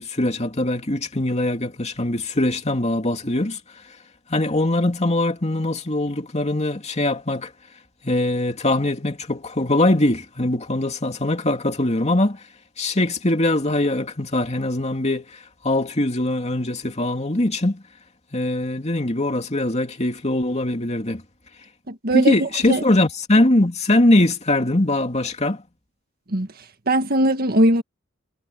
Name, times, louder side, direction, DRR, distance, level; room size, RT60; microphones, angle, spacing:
voice 1, 0.0-3.6 4.3-7.5 8.0-12.4 12.8-15.2 15.6-17.8 18.3-21.2 22.1-25.6, left 1 dB, 35° left, 2.7 m, -22 dB
voice 2, 21.9-22.8 26.3-26.5 26.9-27.8, right 1 dB, 50° right, 1.8 m, -20 dB
head